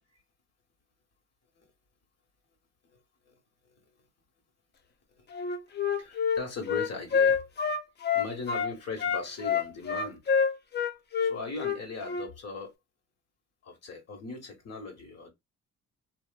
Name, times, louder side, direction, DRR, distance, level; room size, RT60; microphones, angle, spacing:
Wind instrument woodwind instrument, 5.3-8.7 9.0-12.3, left 6 dB, 35° left, 0.5 m, -27 dB
voice 1, 5.9-7.4 8.1-10.2 11.2-12.7 13.6-15.3, left 3 dB, 55° left, 1.4 m, -39 dB
2.9 x 2.4 x 2.3 m
cardioid pair, 90°, 30 cm